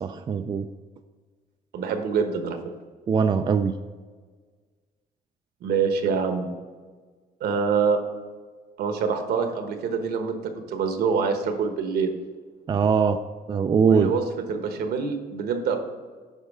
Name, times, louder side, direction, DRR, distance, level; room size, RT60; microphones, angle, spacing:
voice 1, 0.0-0.7 3.1-3.7 12.7-13.2 13.5-14.1, right 6 dB, 30° right, 8 dB, 0.3 m, -21 dB
voice 2, 1.7-2.6 5.6-6.5 7.4-8.0 8.8-10.4 10.7-12.2 13.8-14.2 14.5-15.8, right 5 dB, 70° right, 6 dB, 1.1 m, -25 dB
9.4 x 5.3 x 3.6 m, 1.5 s
cardioid pair, 110°, 17 cm